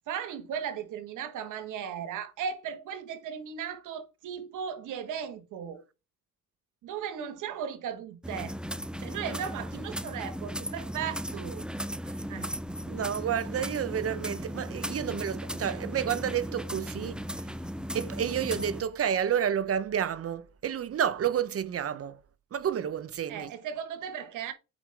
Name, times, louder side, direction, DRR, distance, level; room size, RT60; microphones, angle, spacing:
voice 1, 0.1-5.8 6.8-8.5 9.0-11.6 12.3-12.5 15.0-15.2 23.3-24.5, right 8 dB, 85° right, 1.5 m, -36 dB
sound 1, 8.2-18.8, equal, 5° right, 0.6 m, -36 dB
voice 2, 12.9-17.2 17.9-22.2 22.5-23.5, right 9 dB, 50° right, 0.8 m, -30 dB
8.6 x 5.0 x 3.4 m
cardioid pair, 90°, 30 cm